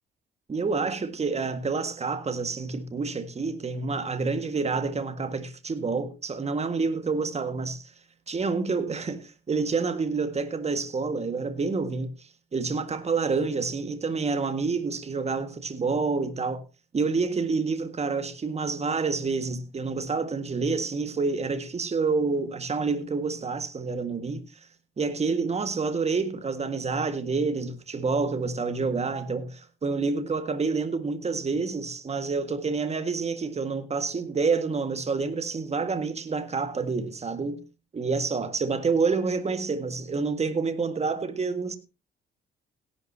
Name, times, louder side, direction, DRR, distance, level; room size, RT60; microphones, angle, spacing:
voice 1, 0.5-7.9 8.3-12.1 12.5-16.6 16.9-24.4 25.0-37.6 37.9-41.8, right 4 dB, 35° right, 1.8 m, -28 dB
17.5 x 11.5 x 2.8 m
cardioid pair, 90°, 20 cm